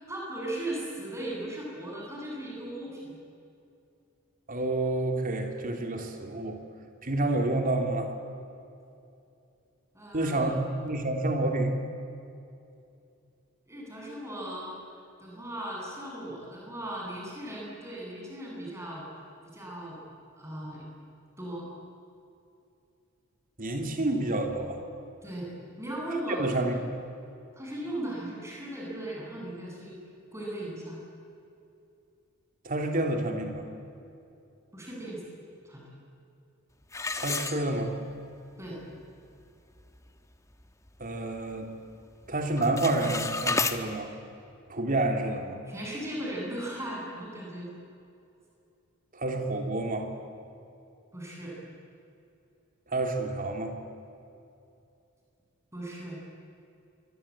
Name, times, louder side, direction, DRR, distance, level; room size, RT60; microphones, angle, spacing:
voice 1, 0.1-3.2 9.9-10.5 13.7-14.8 15.2-19.1 19.5-20.0 20.4-20.9 21.4-21.7 25.2-26.7 27.5-30.0 30.3-31.0 34.7-35.3 35.6-35.8 38.6-38.8 45.7-47.7 51.1-51.5 55.7-56.2, right 1 dB, 15° right, -3 dB, 8.0 m, -37 dB
voice 2, 4.5-6.6 7.0-8.1 10.1-10.6 10.8-11.8 23.6-24.8 26.4-26.8 32.6-33.7 37.2-37.9 41.0-41.8 42.3-44.1 44.7-45.6 49.1-50.1 52.9-53.8, right 2 dB, 40° right, 4 dB, 3.1 m, -29 dB
sound 1, 36.9-38.2 38.6-38.7 39.3-39.4 39.8-40.1 40.5-41.6 41.9-42.2 42.5-43.8, left 3 dB, 15° left, 1.2 m, -32 dB
26.5 x 23.0 x 8.8 m, 2.6 s
head